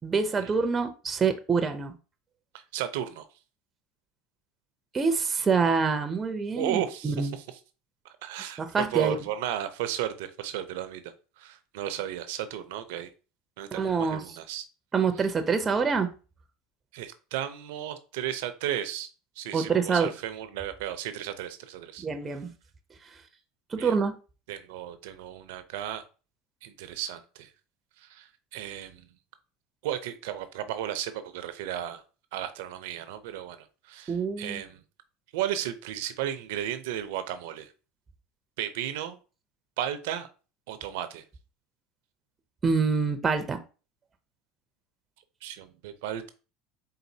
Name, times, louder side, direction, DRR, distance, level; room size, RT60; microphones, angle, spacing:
voice 1, 0.0-1.9 4.9-7.3 8.6-9.2 13.7-14.2 14.9-16.1 19.5-20.1 22.0-22.5 23.7-24.2 34.1-34.6 42.6-43.6, right 5 dB, 25° right, 0.6 m, -26 dB
voice 2, 2.5-3.3 6.5-7.6 8.2-13.1 13.6-14.7 16.9-19.1 19.4-22.1 23.8-24.0 24.5-26.0 26.6-27.5 28.0-29.0 29.8-32.0 32.3-34.8 35.3-37.7 38.6-39.2 39.8-40.3 40.7-41.2 45.4-46.3, right 11 dB, 80° right, 0.6 m, -34 dB
4.0 x 3.9 x 2.7 m
supercardioid pair, 100°, 0 cm